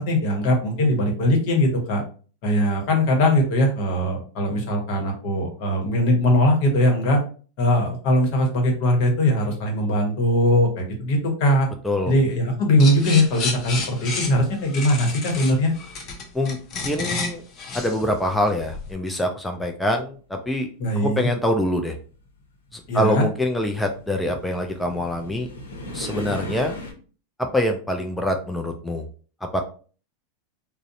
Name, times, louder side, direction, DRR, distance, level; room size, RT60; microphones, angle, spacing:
voice 1, 0.0-2.0 2.4-7.2 7.6-11.7 12.0-15.7 20.8-21.3 22.9-23.2, left 1 dB, 60° left, 1 dB, 1.0 m, -20 dB
sound 1, 12.8-18.9, left 4 dB, 40° left, 0.7 m, -31 dB
voice 2, 16.8-17.4 17.7-20.7 21.0-22.0 22.7-25.5 25.9-26.8 27.4-29.0 29.5-29.6, left 1 dB, 5° left, 3 dB, 0.3 m, -24 dB
sound 2, 20.8-26.9, left 1 dB, 90° left, 0.7 m, -38 dB
2.5 x 2.0 x 2.6 m, 0.40 s
hypercardioid pair, 105°, 0 cm